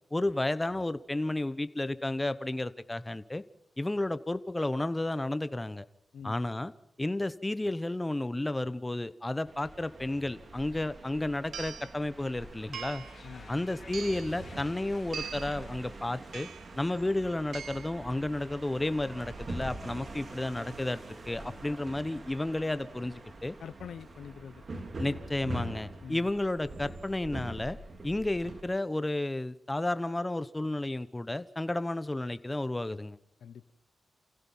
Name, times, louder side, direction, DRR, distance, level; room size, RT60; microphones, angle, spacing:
voice 1, 0.1-3.4 3.8-5.8 6.2-6.7 7.0-13.0 13.5-16.5 16.8-21.0 21.2-23.5 25.0-27.8 28.0-33.2, left 2 dB, 15° left, 14 dB, 1.0 m, -32 dB
sound 1, 9.5-28.6, right 2 dB, 45° right, 3.1 m, -44 dB
sound 2, 10.7-10.8 11.5-11.9 12.7-13.2 13.9-14.3 15.1-15.6 16.3-16.7 17.5-18.0, right 7 dB, 90° right, 0.9 m, -41 dB
sound 3, 12.2-17.1, left 4 dB, 55° left, 3.2 m, -55 dB
voice 2, 13.2-13.7 23.6-24.6 26.0-26.3 33.4-33.7, left 7 dB, 85° left, 11 dB, 0.8 m, -45 dB
29.0 x 16.0 x 5.6 m, 0.76 s
cardioid pair, 85°, 0 cm